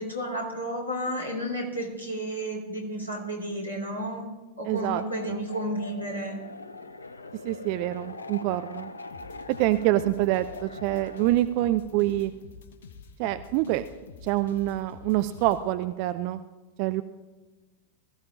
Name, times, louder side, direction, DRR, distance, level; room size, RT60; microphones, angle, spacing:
voice 1, 0.0-4.3 4.6-6.4, equal, 90° right, -2 dB, 3.2 m, -32 dB
sound 1, 4.7-11.3, left 3 dB, 75° left, 0.6 m, -42 dB
voice 2, 4.7-5.0 5.3-5.4 7.4-8.9 9.6-12.3 13.2-13.8 14.2-16.4 16.8-17.0, right 15 dB, 45° right, 12 dB, 0.4 m, -26 dB
sound 2, 9.1-15.6, left 5 dB, 60° left, 1.1 m, -47 dB
22.0 x 14.5 x 2.6 m, 1.2 s
figure-of-eight pair, 90°, 0 cm